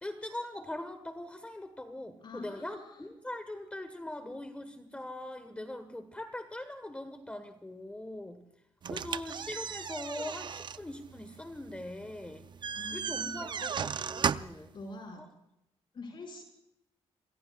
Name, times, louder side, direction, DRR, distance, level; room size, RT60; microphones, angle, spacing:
voice 1, 0.0-8.4 8.9-12.5 12.9-14.7, left 1 dB, 10° left, 8 dB, 1.4 m, -41 dB
voice 2, 2.2-3.0 12.7-13.7 14.4-15.2 15.9-16.4, left 2 dB, 45° left, 2 dB, 5.6 m, -46 dB
sound 1, 8.8-14.7, right 7 dB, 45° right, 0.6 m, -36 dB
27.0 x 21.0 x 2.4 m, 0.83 s
cardioid pair, 110°, 11 cm